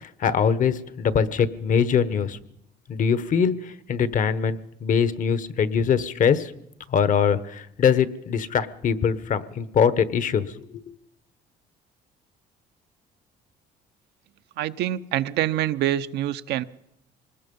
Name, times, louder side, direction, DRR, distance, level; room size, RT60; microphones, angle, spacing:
voice 1, 0.0-2.4 2.9-6.5 6.9-10.9, left 7 dB, 50° left, 14 dB, 1.3 m, -23 dB
voice 2, 14.6-16.6, right 13 dB, 80° right, 11 dB, 0.9 m, -25 dB
24.5 x 20.0 x 5.5 m, 0.79 s
cardioid pair, 110°, 17 cm